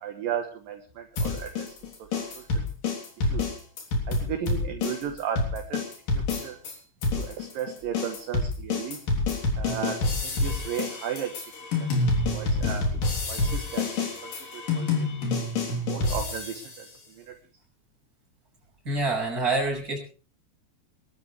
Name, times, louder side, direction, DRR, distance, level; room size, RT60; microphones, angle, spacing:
voice 1, 0.0-2.1 2.3-2.6 3.2-3.5 4.1-5.8 6.1-6.6 7.1-9.0 9.6-11.4 11.8-11.9 12.3-12.9 13.3-15.3 15.9-17.4, right 8 dB, 65° right, 5 dB, 2.6 m, -35 dB
sound 1, 1.2-6.7 7.0-16.8, left 3 dB, 55° left, 4.7 m, -27 dB
voice 2, 18.8-20.0, right 2 dB, 20° right, -1 dB, 6.3 m, -26 dB
23.0 x 13.0 x 3.4 m, 0.36 s
omnidirectional pair, 5.0 m